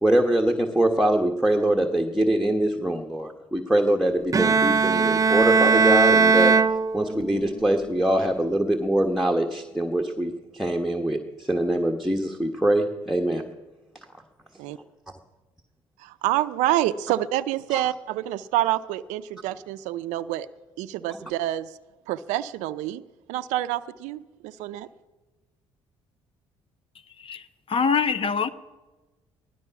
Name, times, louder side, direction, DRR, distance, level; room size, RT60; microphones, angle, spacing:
voice 1, 0.0-6.6 6.9-13.4 17.7-17.8, right 1 dB, ahead, 1 dB, 1.4 m, -23 dB
Bowed string instrument, 4.3-7.5, right 4 dB, 30° right, 0.6 m, -19 dB
voice 2, 16.0-20.5 20.8-21.8 22.1-23.0 23.3-24.9, right 14 dB, 80° right, 13 dB, 0.5 m, -27 dB
voice 3, 27.1-28.5, left 6 dB, 45° left, 13 dB, 1.0 m, -25 dB
16.5 x 12.5 x 5.9 m, 1.2 s
supercardioid pair, 60°, 12 cm